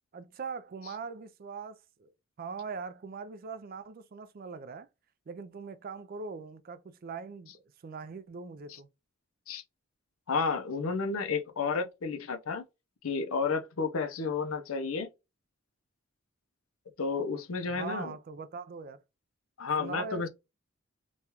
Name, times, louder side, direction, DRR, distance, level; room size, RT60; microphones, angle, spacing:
voice 1, 0.1-2.1 2.4-4.9 5.3-8.9 17.6-19.0 19.8-20.3, right 5 dB, 45° right, 0.3 m, -41 dB
voice 2, 10.3-12.6 13.0-15.1 17.0-18.1 19.6-20.3, left 4 dB, 80° left, 0.6 m, -31 dB
3.0 x 2.3 x 2.8 m
head